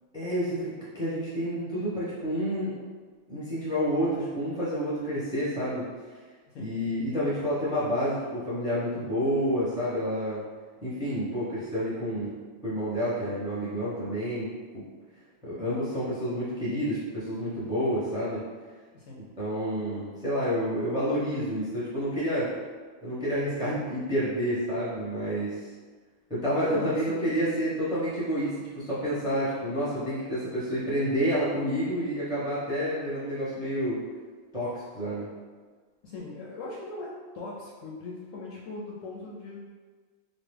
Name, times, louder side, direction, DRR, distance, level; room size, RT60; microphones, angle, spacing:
voice 1, 0.1-2.7 3.3-5.9 6.6-10.4 10.8-12.3 12.6-14.5 14.7-14.8 15.4-18.4 19.4-22.5 23.0-25.5 26.3-34.0 34.5-35.3, equal, 5° right, -9 dB, 0.6 m, -29 dB
voice 2, 18.9-19.3 26.5-27.2 36.0-39.7, left 2 dB, 70° left, -5 dB, 0.8 m, -40 dB
3.0 x 2.2 x 3.4 m, 1.4 s
omnidirectional pair, 1.5 m